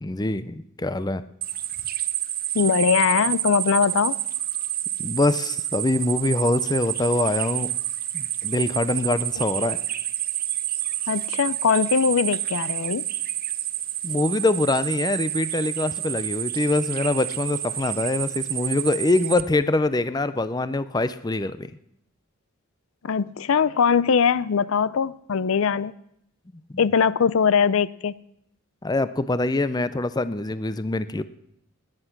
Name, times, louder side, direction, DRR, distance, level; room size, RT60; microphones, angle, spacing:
voice 1, 0.0-1.2 5.0-7.7 8.1-9.8 14.0-21.7 28.8-31.2, left 2 dB, 20° left, 0.5 m, -24 dB
sound 1, 1.4-19.4, right 13 dB, 45° right, 0.7 m, -29 dB
voice 2, 2.5-4.1 11.1-13.0 23.0-25.9 26.8-28.1, left 6 dB, 80° left, 0.5 m, -21 dB
19.0 x 10.0 x 5.9 m
head